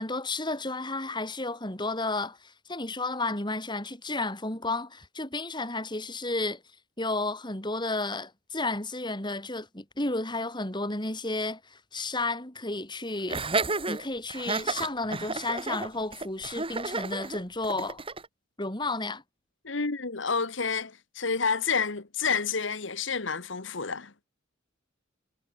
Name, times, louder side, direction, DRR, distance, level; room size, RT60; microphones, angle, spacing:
voice 1, 0.0-6.6 7.0-13.4 13.9-18.0 18.6-19.2, left 2 dB, 25° left, 5.3 m, -32 dB
Laughter, 13.3-18.3, right 3 dB, 30° right, 3.4 m, -31 dB
voice 2, 19.6-24.1, left 5 dB, 70° left, 1.5 m, -29 dB
head